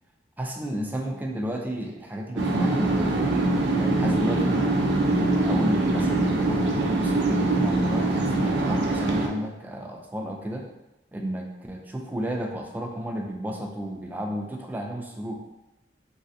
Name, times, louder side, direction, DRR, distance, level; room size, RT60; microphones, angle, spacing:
voice 1, 0.4-3.3 3.7-10.6 11.1-15.3, equal, 10° right, 1 dB, 0.3 m, -33 dB
sound 1, 2.4-9.3, right 2 dB, 75° right, 0.4 m, -23 dB
3.2 x 2.5 x 2.6 m, 0.96 s
head